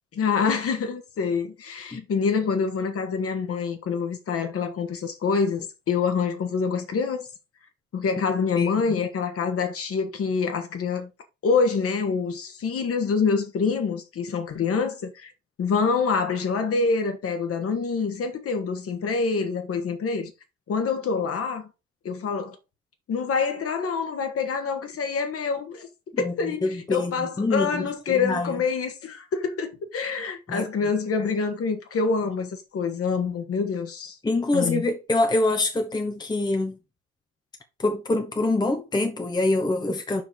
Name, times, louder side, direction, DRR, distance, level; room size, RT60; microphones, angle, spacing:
voice 1, 0.1-7.3 7.9-11.1 11.4-15.3 15.6-20.3 20.7-21.7 22.0-22.6 23.1-25.9 26.2-34.2 34.5-34.8, left 5 dB, 30° left, 1.7 m, -26 dB
voice 2, 8.6-9.0 26.1-28.5 30.5-30.9 34.2-36.8 37.8-40.2, left 2 dB, 10° left, 1.2 m, -25 dB
5.7 x 5.2 x 5.4 m
figure-of-eight pair, 75°, 43 cm